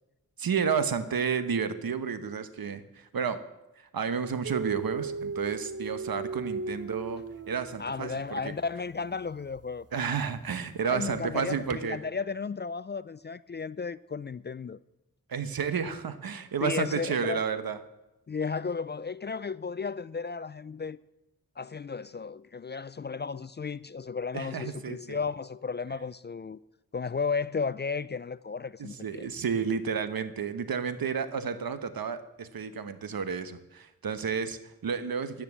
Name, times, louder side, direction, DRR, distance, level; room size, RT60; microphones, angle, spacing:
voice 1, 0.4-3.4 3.8-8.5 9.9-12.0 15.3-17.8 24.3-25.2 28.8-35.4, right 6 dB, 75° right, 1.1 m, -31 dB
Dog, 4.4-8.4 9.5-9.6 11.7-11.8, right 4 dB, 40° right, 0.7 m, -37 dB
voice 2, 7.8-9.9 10.8-14.8 16.6-17.4 18.3-21.0 21.6-26.6 26.9-29.3, left 5 dB, 30° left, 0.4 m, -34 dB
10.0 x 9.6 x 7.4 m
cardioid pair, 45°, 36 cm